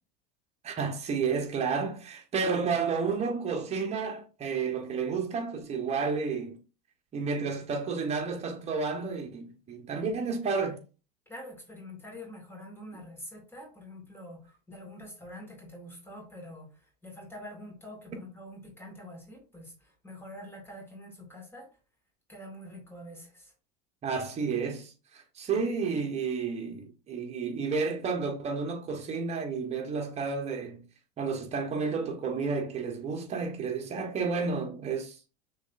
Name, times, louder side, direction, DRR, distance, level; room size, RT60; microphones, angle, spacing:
voice 1, 0.6-6.6 7.1-10.8 24.0-30.8 31.2-35.2, right 5 dB, 30° right, 1.3 m, -31 dB
voice 2, 11.3-16.7 17.0-19.7 20.0-21.7 22.3-23.5, left 1 dB, 10° left, 2.0 m, -45 dB
6.2 x 3.2 x 2.6 m
supercardioid pair, 110°, 21 cm